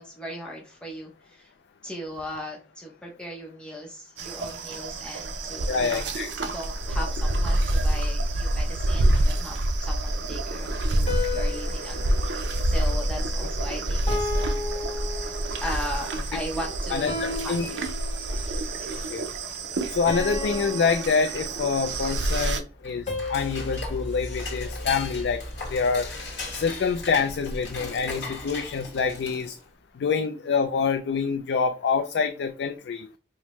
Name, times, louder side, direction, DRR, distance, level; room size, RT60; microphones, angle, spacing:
voice 1, 0.0-1.5 1.8-6.1 6.4-14.7 15.6-17.9 18.2-18.6, left 1 dB, 5° left, -2 dB, 0.6 m, -38 dB
sound 1, 4.2-22.6, right 1 dB, 80° right, 0.6 m, -27 dB
voice 2, 5.7-6.3 16.9-17.7 18.9-19.3 19.9-26.1 26.5-29.6 29.9-33.1, left 5 dB, 70° left, 7 dB, 0.3 m, -26 dB
sound 2, 11.1-13.6 14.1-15.8 17.1-18.6 20.1-21.9 23.1-25.4, left 3 dB, 30° left, 0.8 m, -35 dB
Dishes pots and pans / Cutlery silverware, 22.8-29.7, left 2 dB, 90° left, 1.4 m, -36 dB
4.8 x 2.1 x 3.0 m, 0.34 s
head